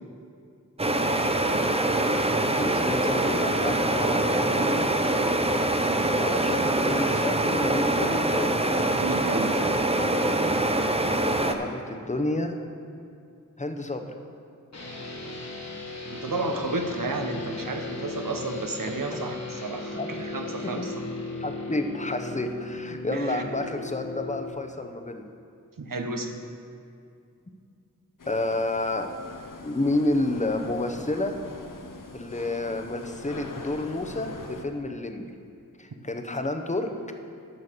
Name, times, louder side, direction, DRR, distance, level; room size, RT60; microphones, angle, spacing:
sound 1, 0.8-11.5, right 1 dB, 20° right, 0.6 m, -24 dB
voice 1, 2.6-4.9 6.2-8.6 11.4-12.6 13.6-14.1 20.0-20.1 20.4-20.5 20.8-20.9 21.4-25.3 28.3-29.1 29.6-31.4 32.1-35.2 35.8-36.9, left 2 dB, 20° left, 6 dB, 0.8 m, -30 dB
voice 2, 9.0-9.6 16.1-20.9 23.1-23.5 25.8-26.3, right 2 dB, 75° right, 4 dB, 1.0 m, -31 dB
sound 2, 14.7-24.5, left 3 dB, 50° left, 1.5 m, -37 dB
sound 3, 28.2-34.6, left 3 dB, 70° left, 0.8 m, -43 dB
11.0 x 5.7 x 6.7 m, 2.4 s
wide cardioid pair, 45°, 33 cm